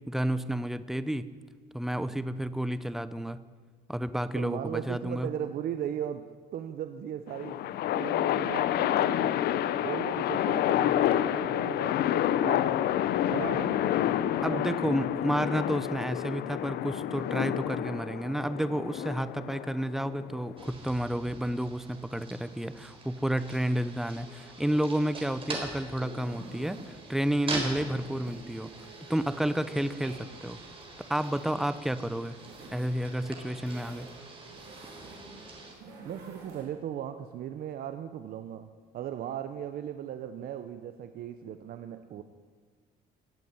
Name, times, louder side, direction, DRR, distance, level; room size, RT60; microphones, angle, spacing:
voice 1, 0.1-1.3 1.7-3.4 3.9-5.3 14.4-28.7 29.1-30.6 31.1-32.4 32.7-34.1, right 1 dB, ahead, 14 dB, 0.7 m, -31 dB
voice 2, 4.3-6.3 6.5-7.6 7.9-9.4 9.8-12.9 13.3-13.8 14.5-14.8 36.0-38.7 38.9-42.2, right 10 dB, 60° right, 9 dB, 0.8 m, -37 dB
sound 1, 7.3-20.7, left 11 dB, 70° left, 0.7 m, -28 dB
sound 2, 20.6-35.8, right 3 dB, 30° right, 3.8 m, -43 dB
sound 3, 25.9-36.6, right 3 dB, 80° right, 4.0 m, -51 dB
16.5 x 8.5 x 9.4 m, 1.5 s
cardioid pair, 110°, 17 cm